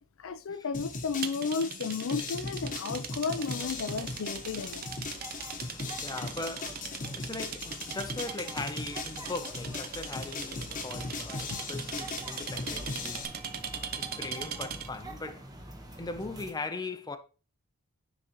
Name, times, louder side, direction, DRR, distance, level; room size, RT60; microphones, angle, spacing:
voice 1, 0.2-5.1 11.5-11.6, left 5 dB, 65° left, 0.5 m, -33 dB
sound 1, 0.7-13.3, left 3 dB, 40° left, 1.0 m, -39 dB
sound 2, 1.2-15.0, right 7 dB, 45° right, 0.7 m, -40 dB
sound 3, 3.4-16.5, right 1 dB, 15° right, 1.1 m, -47 dB
voice 2, 5.5-6.9 7.2-13.3 14.0-15.5 16.0-17.2, left 3 dB, 20° left, 0.6 m, -39 dB
9.9 x 4.0 x 2.9 m
head